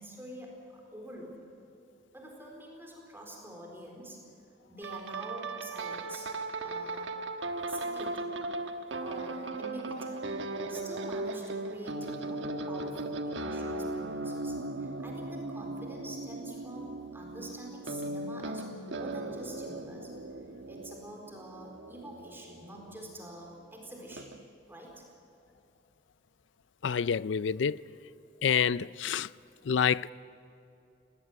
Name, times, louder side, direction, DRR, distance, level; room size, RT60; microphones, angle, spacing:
voice 1, 0.0-1.4 2.1-4.2 4.7-6.3 6.6-7.1 7.7-8.4 9.0-10.2 10.7-20.1 20.7-24.3 24.7-25.0, right 1 dB, 10° right, 4.2 m, -46 dB
sound 1, 4.8-23.3 24.1-24.4, right 2 dB, 90° right, 1.3 m, -37 dB
voice 2, 26.8-27.8 28.4-29.3 29.7-30.1, left 7 dB, 90° left, 0.5 m, -27 dB
19.5 x 18.5 x 9.4 m
head